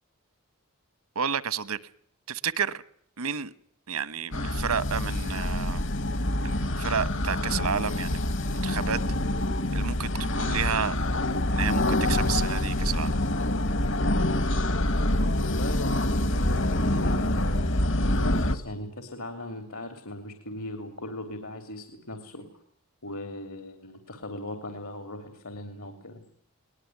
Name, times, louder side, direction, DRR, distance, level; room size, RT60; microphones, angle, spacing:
voice 1, 1.1-1.8 2.3-2.8 3.2-3.5 3.9-5.8 6.4-9.0 9.7-11.0 11.5-13.1, right 7 dB, 85° right, 17 dB, 1.2 m, -31 dB
sound 1, 4.3-18.6, left 1 dB, 55° left, 1.6 m, -26 dB
voice 2, 15.4-22.6 23.0-26.2, left 1 dB, 75° left, 7 dB, 3.4 m, -38 dB
22.0 x 19.5 x 9.3 m, 0.65 s
head